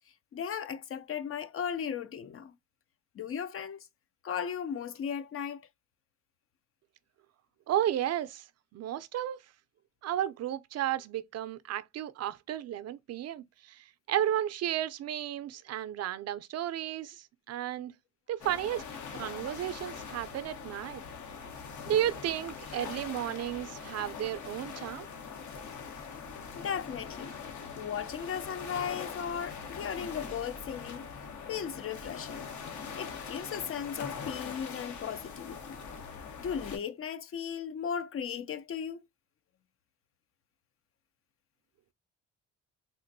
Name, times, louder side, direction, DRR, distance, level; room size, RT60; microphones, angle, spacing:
voice 1, 0.3-2.5 3.2-3.9 4.2-5.6 26.6-27.3 27.8-31.0 31.5-32.5 33.0-35.8 36.4-39.0, left 7 dB, 45° left, 0.5 m, -36 dB
voice 2, 7.7-8.5 8.7-9.4 10.0-17.9 18.3-18.8 19.1-21.0 21.9-25.1, right 11 dB, 55° right, 0.5 m, -33 dB
sound 1, 18.4-36.8, left 6 dB, 70° left, 1.0 m, -42 dB
3.6 x 2.5 x 2.6 m
cardioid pair, 90°, 30 cm